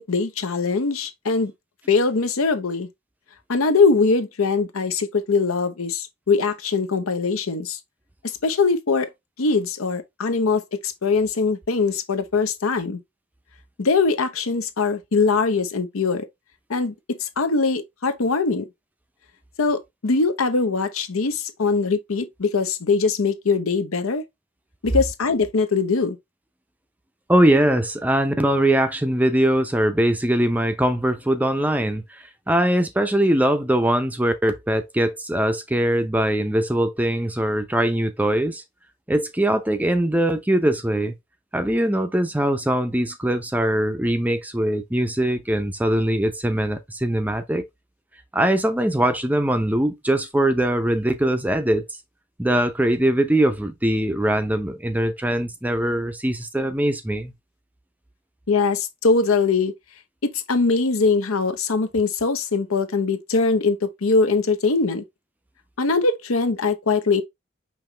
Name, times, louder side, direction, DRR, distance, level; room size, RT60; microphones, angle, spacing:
voice 1, 0.0-1.5 1.9-2.9 3.5-7.8 8.4-9.1 9.4-13.0 13.8-16.3 16.7-18.7 19.6-24.2 24.8-26.2 58.5-59.7 60.2-65.0 65.8-67.2, left 4 dB, 80° left, 0.8 m, -22 dB
voice 2, 27.3-38.6 39.1-41.1 41.5-47.6 48.3-51.9 52.4-57.3, right 1 dB, 5° right, 0.5 m, -21 dB
5.5 x 3.0 x 3.2 m
head